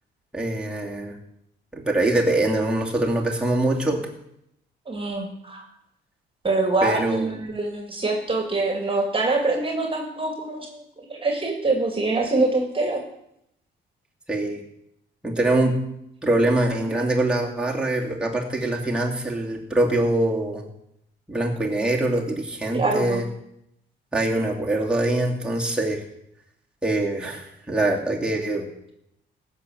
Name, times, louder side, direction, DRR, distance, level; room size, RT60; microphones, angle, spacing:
voice 1, 0.3-1.2 1.7-4.0 6.8-7.3 14.3-14.6 15.2-15.8 16.2-20.7 21.3-23.2 24.1-26.0 26.8-28.6, right 1 dB, 5° right, -2 dB, 2.6 m, -23 dB
voice 2, 4.9-5.6 6.4-13.0 22.7-23.2, right 3 dB, 25° right, 3 dB, 2.3 m, -24 dB
15.5 x 6.2 x 7.9 m, 0.78 s
cardioid pair, 90°, 20 cm